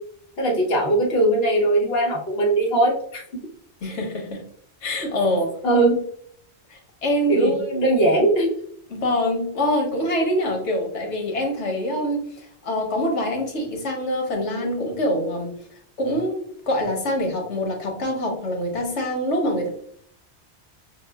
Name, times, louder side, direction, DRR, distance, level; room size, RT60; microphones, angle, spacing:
voice 1, 0.4-3.2 5.6-6.0 7.3-8.6, right 1 dB, 60° left, -1 dB, 1.1 m, -20 dB
voice 2, 3.8-4.4 4.8-5.5 6.7-7.8 8.9-15.6 16.0-19.7, equal, 80° left, 1 dB, 1.3 m, -25 dB
5.9 x 2.0 x 2.2 m, 0.65 s
omnidirectional pair, 1.2 m